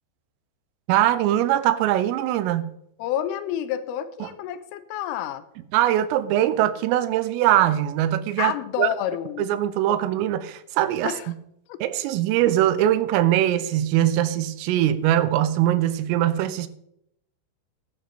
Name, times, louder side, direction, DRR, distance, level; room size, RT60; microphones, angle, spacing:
voice 1, 0.9-2.7 4.2-4.3 5.7-8.5 8.8-8.9 9.4-11.3 11.8-16.7, right 12 dB, 85° right, 14 dB, 3.4 m, -22 dB
voice 2, 3.0-5.5 8.4-9.5 11.0-11.3 11.7-11.8, left 11 dB, 85° left, 11 dB, 3.3 m, -29 dB
13.0 x 11.0 x 4.1 m, 0.76 s
omnidirectional pair, 5.9 m